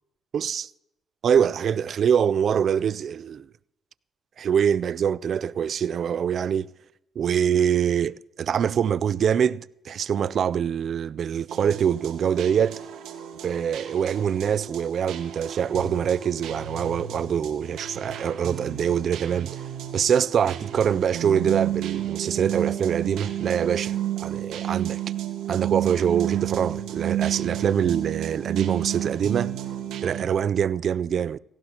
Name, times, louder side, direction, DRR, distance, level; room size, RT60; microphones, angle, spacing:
voice 1, 0.3-0.7 1.2-3.5 4.4-6.7 7.2-12.8 13.4-19.6 19.9-24.0 24.2-25.0 25.5-29.6 30.0-31.4, right 8 dB, 60° right, 0.4 m, -24 dB
sound 1, 11.5-30.2, right 11 dB, 90° right, 1.5 m, -32 dB
17.5 x 16.5 x 2.9 m
cardioid pair, 90°, 0 cm